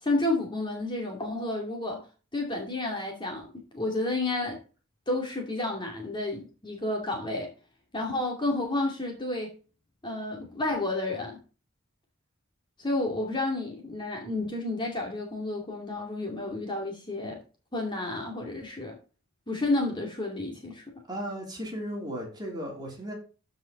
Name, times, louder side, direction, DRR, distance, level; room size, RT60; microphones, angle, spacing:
voice 1, 0.0-2.1 2.3-4.6 5.1-7.5 7.9-9.5 10.0-11.4 12.8-17.4 17.7-19.0 19.5-20.8, left 2 dB, 20° left, 2.3 m, -31 dB
voice 2, 21.1-23.1, equal, 20° right, 3.3 m, -35 dB
14.0 x 5.2 x 4.1 m
head